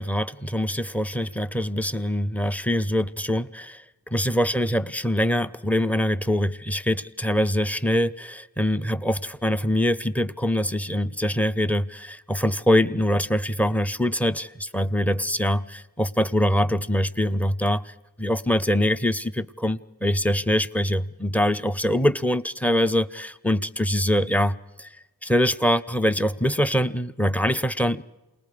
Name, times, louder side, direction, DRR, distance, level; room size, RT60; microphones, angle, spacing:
voice 1, 0.0-3.8 4.1-17.9 18.2-24.9 25.2-28.0, equal, 5° left, 0.6 m, -24 dB
28.0 x 20.0 x 5.0 m
cardioid pair, 60°, 45 cm